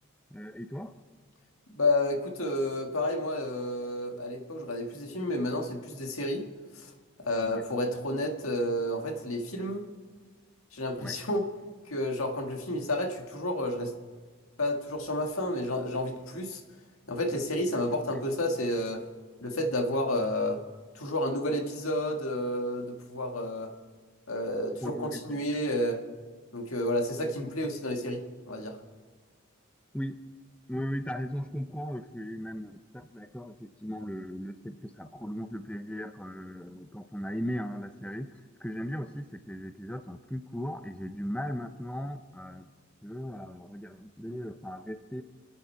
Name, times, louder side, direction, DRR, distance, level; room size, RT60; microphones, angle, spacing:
voice 1, 0.3-0.9 7.4-7.6 11.0-11.2 18.1-18.2 24.8-25.6 29.9-30.2 30.7-42.7 43.0-45.2, equal, 5° left, 8 dB, 0.5 m, -37 dB
voice 2, 1.7-6.5 6.8-6.9 7.2-9.9 10.7-11.5 11.9-13.9 14.6-16.6 17.1-19.0 19.4-20.6 21.0-23.7 24.3-26.0 26.5-28.8, left 1 dB, 85° left, 3 dB, 1.8 m, -30 dB
28.0 x 9.8 x 4.5 m, 1.5 s
head